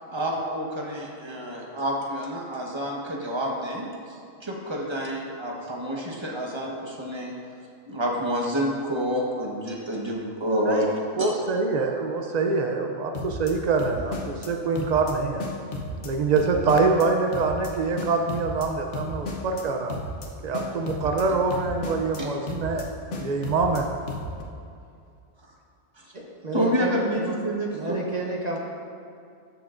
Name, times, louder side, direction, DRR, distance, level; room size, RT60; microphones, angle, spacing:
voice 1, 0.1-7.3 7.9-11.3 22.2-22.3 26.0-26.1 26.5-27.7, equal, 25° right, -2 dB, 1.0 m, -28 dB
voice 2, 11.2-15.4 16.0-20.0 20.4-22.8 23.2-23.9, right 4 dB, 70° right, 3 dB, 0.4 m, -25 dB
sound 1, 13.1-13.5 13.8-14.5 14.8-15.1 15.4-16.1 16.4-17.1 17.3-17.7 18.0-18.7 18.9-19.6 19.9-20.3 20.5-21.2 21.5-22.2 22.5-22.8 23.1-23.8 24.1-24.4, left 2 dB, 65° left, 1.2 m, -33 dB
voice 3, 26.1-27.3 27.7-28.6, right 2 dB, 40° right, -1 dB, 0.7 m, -31 dB
14.0 x 6.4 x 2.5 m, 2.4 s
omnidirectional pair, 1.3 m